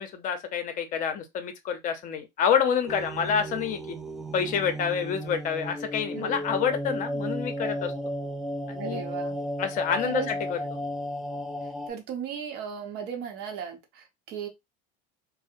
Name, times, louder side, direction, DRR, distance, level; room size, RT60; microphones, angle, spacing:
voice 1, 0.0-4.0 4.3-7.9 8.7-9.0 9.6-10.2 10.5-10.6, left 7 dB, 40° left, 0.6 m, -28 dB
sound 1, 2.9-11.9, equal, ahead, 0.3 m, -34 dB
voice 2, 6.1-6.4 8.8-9.4 10.0-10.3 11.9-14.5, right 8 dB, 55° right, 0.8 m, -36 dB
2.7 x 2.0 x 2.4 m
supercardioid pair, 120°, 20 cm